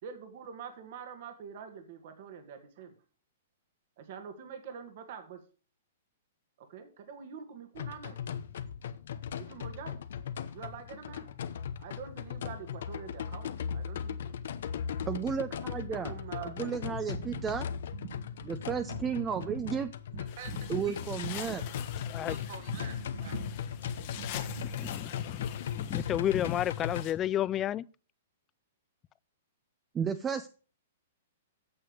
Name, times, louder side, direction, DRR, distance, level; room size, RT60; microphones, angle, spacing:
voice 1, 0.0-2.9 4.0-5.4 6.6-8.2 9.4-10.0 10.5-14.3 15.5-16.7 17.2-19.8 20.1-21.1 21.3-21.6 22.2-24.8, right 7 dB, 55° right, 1.8 m, -45 dB
sound 1, 7.8-27.0, left 8 dB, 70° left, 0.9 m, -38 dB
voice 2, 15.1-16.1 16.4-17.6 18.5-19.9 20.7-21.6 29.9-30.5, right 7 dB, 20° right, 0.6 m, -33 dB
sound 2, 20.3-27.1, left 12 dB, 45° left, 1.3 m, -46 dB
voice 3, 24.8-25.4 25.7-27.9, left 11 dB, 25° left, 0.4 m, -31 dB
8.7 x 6.9 x 6.4 m
hypercardioid pair, 135°, 0 cm